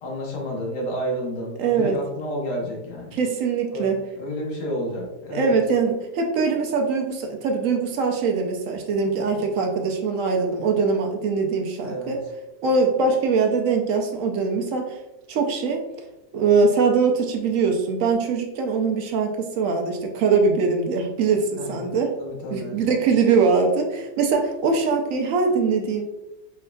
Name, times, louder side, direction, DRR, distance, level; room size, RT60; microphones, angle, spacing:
voice 1, 0.0-3.2 3.7-3.9 4.2-5.6 11.8-12.1 21.6-22.8, equal, 75° left, -1 dB, 1.6 m, -30 dB
voice 2, 1.6-2.0 3.1-4.0 5.3-12.2 12.6-15.0 15.3-15.8 16.3-22.2 22.5-26.0, right 4 dB, 70° right, 3 dB, 0.8 m, -22 dB
4.6 x 3.4 x 2.2 m, 0.97 s
omnidirectional pair, 1.8 m